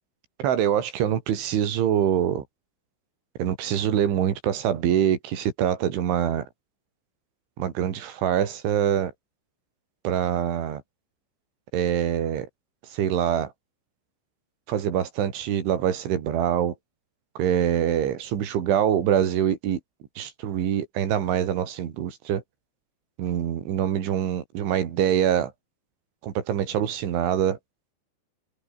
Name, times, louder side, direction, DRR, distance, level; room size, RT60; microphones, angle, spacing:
voice 1, 0.4-2.5 3.4-6.4 7.6-9.1 10.1-10.8 11.7-12.5 12.9-13.5 14.7-16.8 17.4-19.8 20.2-22.4 23.2-25.5 26.2-27.6, right 9 dB, 85° right, 5.3 m, -24 dB
omnidirectional pair, 5.3 m